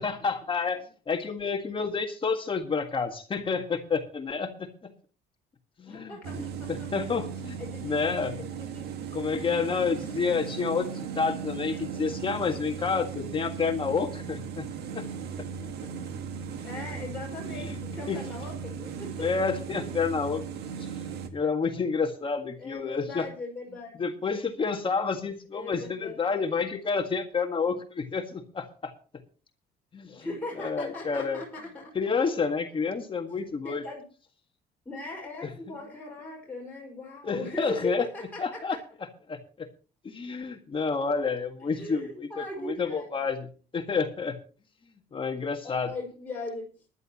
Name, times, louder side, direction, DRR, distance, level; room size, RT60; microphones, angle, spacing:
voice 1, 0.0-4.9 5.8-6.4 6.7-7.6 7.8-8.3 9.1-14.7 14.9-15.1 15.4-15.5 16.5-16.9 17.6-17.8 18.1-18.2 19.2-20.5 20.8-20.9 21.3-23.3 24.0-28.9 29.9-30.3 30.6-31.4 32.0-33.8 35.4-35.7 37.2-38.1 38.4-38.8 39.3-39.7 40.0-44.4 45.1-45.9, left 5 dB, 30° left, 5 dB, 1.7 m, -29 dB
voice 2, 5.9-6.9 7.6-8.9 16.6-19.5 21.6-21.9 22.6-24.1 25.5-26.2 30.2-31.9 33.6-34.0 34.9-38.6 41.7-43.1 45.6-46.7, left 2 dB, 10° left, -4 dB, 5.4 m, -39 dB
sound 1, 6.2-21.3, right 7 dB, 75° right, 1.8 m, -37 dB
20.0 x 11.5 x 3.0 m, 0.37 s
cardioid pair, 110°, 17 cm